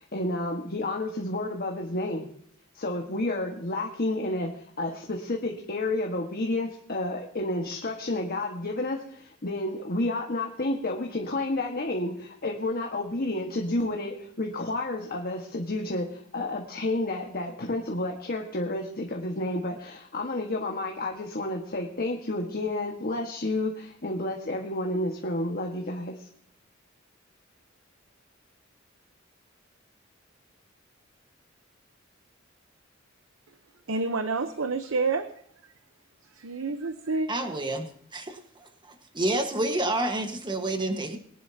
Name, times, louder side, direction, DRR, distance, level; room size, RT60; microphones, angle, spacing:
voice 1, 0.0-2.3 2.7-26.1, left 2 dB, 50° left, 1 dB, 1.5 m, -30 dB
voice 2, 33.9-35.3 36.3-37.3, right 3 dB, 80° right, 9 dB, 0.8 m, -28 dB
voice 3, 37.3-37.9 38.1-38.7 39.1-41.2, right 1 dB, 25° right, 5 dB, 1.4 m, -28 dB
22.0 x 11.0 x 2.8 m, 0.64 s
head